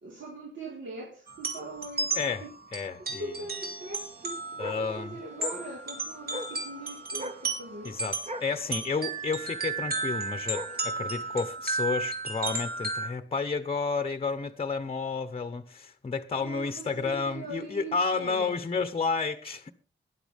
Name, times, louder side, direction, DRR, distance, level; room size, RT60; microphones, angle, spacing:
voice 1, 0.0-2.5 3.0-8.0 16.4-18.6, right 2 dB, 80° right, 4.1 m, -41 dB
sound 1, 1.3-13.1, right 3 dB, 50° right, 3.7 m, -34 dB
voice 2, 2.7-3.3 4.6-5.1 7.8-19.7, left 4 dB, 30° left, 0.8 m, -31 dB
sound 2, 3.5-11.4, right 1 dB, 35° right, 1.2 m, -43 dB
19.0 x 11.0 x 3.5 m
wide cardioid pair, 145°, 19 cm